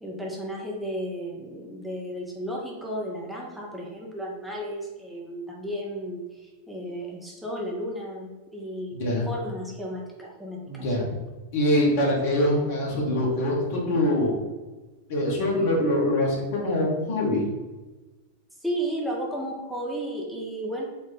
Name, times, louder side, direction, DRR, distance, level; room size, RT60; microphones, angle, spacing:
voice 1, 0.0-10.8 18.6-20.8, equal, 5° right, -3 dB, 0.7 m, -33 dB
voice 2, 10.7-11.1 11.5-14.4 15.1-17.5, left 1 dB, 50° left, -3 dB, 1.3 m, -24 dB
4.2 x 2.4 x 3.8 m, 1.2 s
figure-of-eight pair, 90°, 0 cm